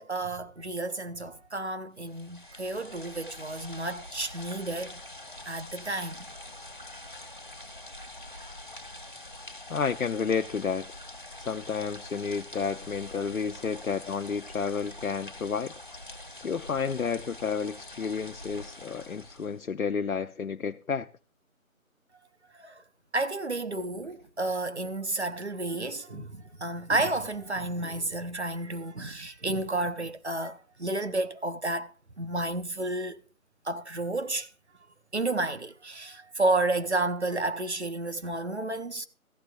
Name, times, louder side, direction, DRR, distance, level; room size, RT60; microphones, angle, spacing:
voice 1, 0.0-5.0 5.5-6.3 22.6-22.8 23.1-31.9 32.2-33.2 33.6-34.5 35.1-39.1, right 2 dB, 50° right, 1.0 m, -31 dB
sound 1, 2.0-19.6, left 1 dB, 35° left, 2.2 m, -45 dB
voice 2, 9.7-10.9 11.4-15.7 16.4-21.1 26.1-26.2, left 6 dB, 75° left, 0.7 m, -31 dB
14.5 x 12.5 x 2.5 m
figure-of-eight pair, 180°, 42 cm